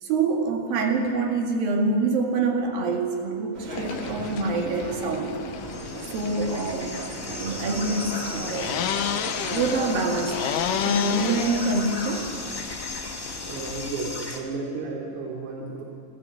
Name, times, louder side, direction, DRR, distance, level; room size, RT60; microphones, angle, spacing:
voice 1, 0.0-5.4 6.1-6.9 7.4-8.7 9.5-12.3, right 3 dB, 85° right, 2 dB, 3.9 m, -26 dB
sound 1, 3.5-11.3, right 3 dB, 30° right, 1.2 m, -37 dB
sound 2, 3.7-13.9, left 11 dB, 75° left, 2.2 m, -32 dB
sound 3, 5.6-14.4, left 2 dB, 15° left, 0.8 m, -36 dB
voice 2, 13.3-15.8, right 3 dB, 60° right, -2 dB, 4.0 m, -33 dB
26.5 x 13.5 x 8.5 m, 2.3 s
omnidirectional pair, 4.0 m